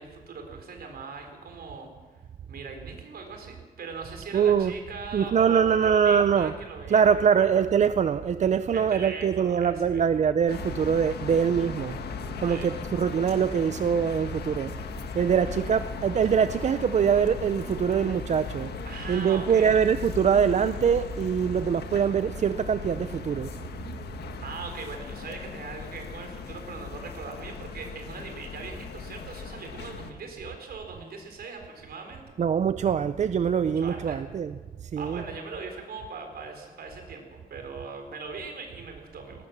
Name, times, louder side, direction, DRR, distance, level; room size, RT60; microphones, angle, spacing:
voice 1, 0.0-2.2 2.5-7.6 8.7-10.1 12.5-12.7 18.8-19.7 24.4-32.4 33.7-34.2 35.0-39.5, right 4 dB, 70° right, 4.1 m, -40 dB
voice 2, 4.3-4.7 5.1-6.5 6.9-12.0 12.4-14.7 15.1-18.7 19.1-23.6 32.4-34.5 34.8-35.2, right 7 dB, 45° right, 0.5 m, -23 dB
sound 1, 10.5-30.1, left 6 dB, 85° left, 1.6 m, -38 dB
19.0 x 19.0 x 7.3 m
wide cardioid pair, 155°, 16 cm